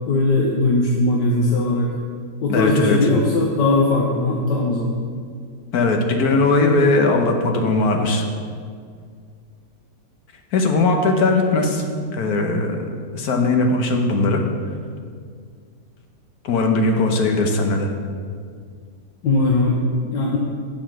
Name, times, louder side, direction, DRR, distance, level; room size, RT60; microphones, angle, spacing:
voice 1, 0.1-1.9 2.4-4.9 19.2-20.4, left 2 dB, 90° left, -2 dB, 1.6 m, -19 dB
voice 2, 2.5-3.0 5.7-8.2 10.5-12.9 13.1-14.4 16.4-17.9, left 2 dB, 65° left, 3 dB, 1.5 m, -19 dB
7.6 x 7.3 x 6.1 m, 2.1 s
omnidirectional pair, 1.8 m